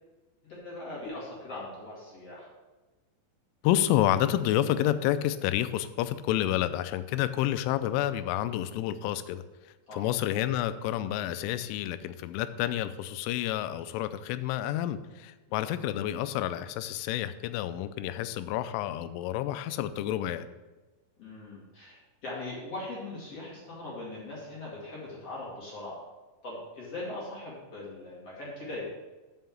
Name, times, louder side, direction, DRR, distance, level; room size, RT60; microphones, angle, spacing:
voice 1, 0.4-2.5 9.9-10.1 15.5-15.6 21.2-26.1 26.4-28.9, left 2 dB, 40° left, -7 dB, 2.3 m, -40 dB
voice 2, 3.6-9.4 9.9-20.5, left 12 dB, 85° left, 11 dB, 2.9 m, -29 dB
6.9 x 5.6 x 7.4 m, 1.2 s
omnidirectional pair, 5.8 m